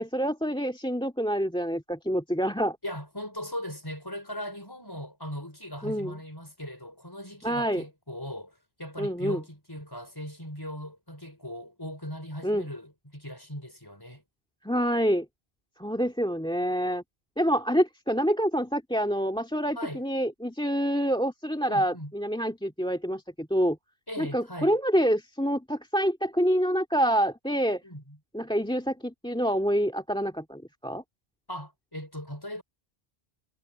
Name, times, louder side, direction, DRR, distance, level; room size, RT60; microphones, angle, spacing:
voice 1, 0.0-2.8 5.8-6.2 7.4-7.8 9.0-9.4 12.4-12.7 14.6-15.3 15.8-17.0 17.4-23.8 24.2-27.8 28.3-31.0, equal, 5° left, 2.2 m, -27 dB
voice 2, 2.8-14.2 19.8-20.0 21.6-22.1 24.1-24.8 27.8-28.2 31.5-32.6, equal, 20° left, 5.3 m, -39 dB
omnidirectional pair, 1.0 m